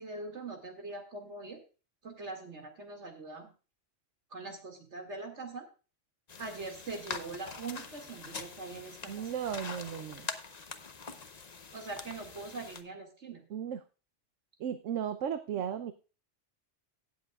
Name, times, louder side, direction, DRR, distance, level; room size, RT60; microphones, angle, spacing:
voice 1, 0.0-1.6 2.0-3.5 4.3-5.7 6.4-9.3 11.7-13.4, right 3 dB, 65° right, 4 dB, 2.7 m, -42 dB
sound 1, 6.3-12.8, left 5 dB, 35° left, 0.9 m, -44 dB
voice 2, 9.1-10.3 13.5-13.8 14.6-15.9, right 8 dB, 85° right, 10 dB, 1.1 m, -35 dB
17.0 x 7.7 x 2.4 m, 0.34 s
omnidirectional pair, 1.3 m